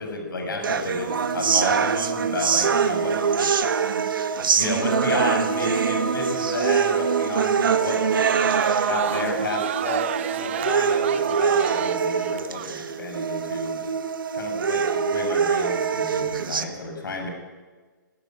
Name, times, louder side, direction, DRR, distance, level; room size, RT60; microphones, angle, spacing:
voice 1, 0.0-4.0 4.6-8.0 8.8-13.9 14.3-17.3, left 3 dB, 85° left, 4 dB, 6.5 m, -32 dB
sound 1, 0.6-16.6, right 6 dB, 85° right, 1.9 m, -24 dB
Water / Toilet flush, 4.5-4.6 5.0-12.9, left 1 dB, 15° left, 7.9 m, -48 dB
Crowd, 7.8-12.7, right 11 dB, 40° right, 0.8 m, -31 dB
21.0 x 16.0 x 9.0 m, 1.4 s
hypercardioid pair, 170°, 11 cm